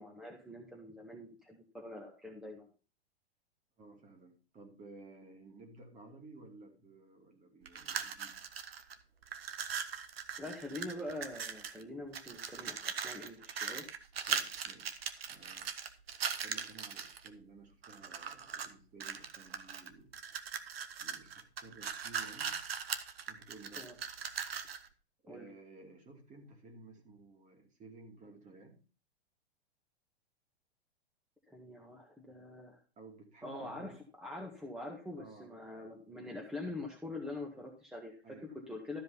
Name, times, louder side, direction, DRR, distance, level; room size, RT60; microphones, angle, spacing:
voice 1, 0.0-2.7 10.4-13.9 23.8-23.9 25.3-25.5 31.5-32.8 33.4-33.9 34.2-38.2 38.7-39.0, left 2 dB, ahead, 1.8 m, -44 dB
voice 2, 3.8-8.4 14.3-15.7 16.4-20.2 21.0-22.6 23.3-23.9 25.2-28.8 33.0-34.0 35.2-35.5 38.2-38.6, right 3 dB, 25° right, 2.7 m, -55 dB
sound 1, 7.7-8.9 9.2-11.8 12.1-17.3 17.8-18.7 19.0-24.9, right 7 dB, 65° right, 1.3 m, -40 dB
13.0 x 5.2 x 5.4 m
figure-of-eight pair, 105°, 32 cm